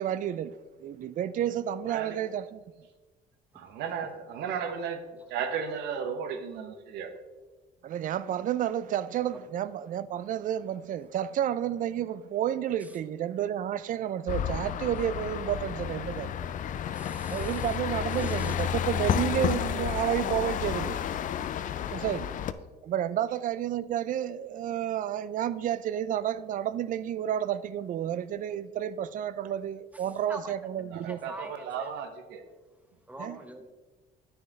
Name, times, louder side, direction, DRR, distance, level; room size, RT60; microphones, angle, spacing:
voice 1, 0.0-2.6 7.8-16.3 17.3-21.0 21.9-22.3 22.8-31.2 33.2-33.4, right 10 dB, 50° right, 0.4 m, -31 dB
voice 2, 1.8-2.2 3.5-7.1 30.8-32.4, right 7 dB, 85° right, 1.1 m, -35 dB
sound 1, 14.3-22.5, left 9 dB, 50° left, 0.5 m, -31 dB
voice 3, 17.0-17.5 18.2-18.5 30.3-30.4 31.3-31.5 33.1-33.7, right 1 dB, 10° right, 0.9 m, -43 dB
9.2 x 6.6 x 4.0 m
cardioid pair, 110°, 17 cm